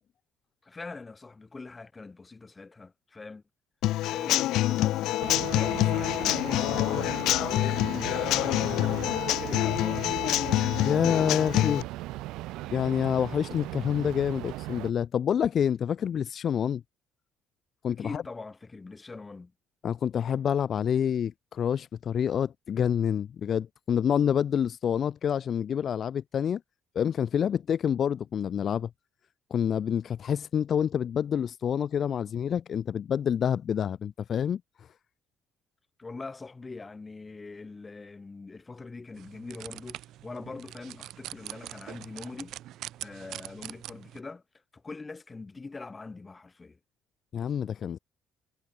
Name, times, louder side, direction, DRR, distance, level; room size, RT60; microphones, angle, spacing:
voice 1, 0.6-3.4 4.1-10.6 18.0-19.5 36.0-42.6 43.0-44.4 44.7-46.8, left 3 dB, 15° left, 6.1 m, -43 dB
Human voice / Acoustic guitar / Drum, 3.8-11.8, left 15 dB, 70° left, 1.6 m, -26 dB
sound 1, 5.2-14.9, right 18 dB, 85° right, 6.9 m, -38 dB
voice 2, 10.8-11.9 12.7-16.8 17.8-18.2 19.8-26.6 26.9-28.9 29.5-34.9 47.3-48.0, left 8 dB, 40° left, 0.8 m, -27 dB
sound 2, 39.1-44.2, right 13 dB, 65° right, 3.1 m, -43 dB
cardioid pair, 145°, 0 cm